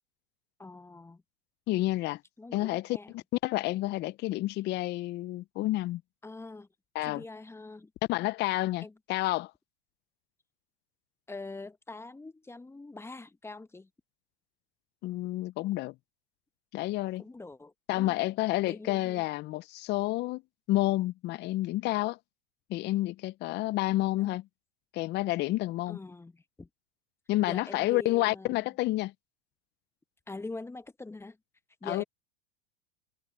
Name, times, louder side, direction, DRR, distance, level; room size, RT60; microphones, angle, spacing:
voice 1, 0.6-1.2 2.4-3.1 6.2-6.7 7.0-7.9 8.8-8.9 11.3-13.9 17.2-18.1 18.6-19.2 24.2-24.3 25.9-26.7 27.4-28.6 30.3-31.4 31.8-32.0, left 3 dB, 10° left, 0.9 m, -43 dB
voice 2, 1.7-2.2 2.5-6.0 6.9-7.2 8.1-9.5 15.0-15.9 16.7-17.2 17.9-20.4 20.7-22.2 22.7-24.5 24.9-26.0 27.3-29.1 31.8-32.0, left 17 dB, 35° left, 0.6 m, -29 dB
hypercardioid pair, 110°, 31 cm